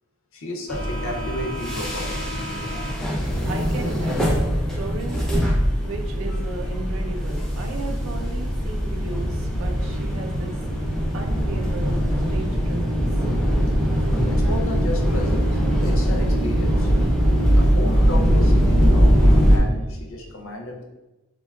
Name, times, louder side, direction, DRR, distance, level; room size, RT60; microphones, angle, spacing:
voice 1, 0.3-2.3 14.3-16.9 17.6-19.2 19.5-20.8, left 1 dB, 60° left, 1 dB, 0.5 m, -33 dB
sound 1, 0.7-19.6, equal, ahead, 0.3 m, -21 dB
voice 2, 3.4-5.2 5.8-10.5 11.1-12.0 12.3-13.1, right 3 dB, 70° right, 3 dB, 0.4 m, -35 dB
3.5 x 2.2 x 2.2 m, 1.0 s
head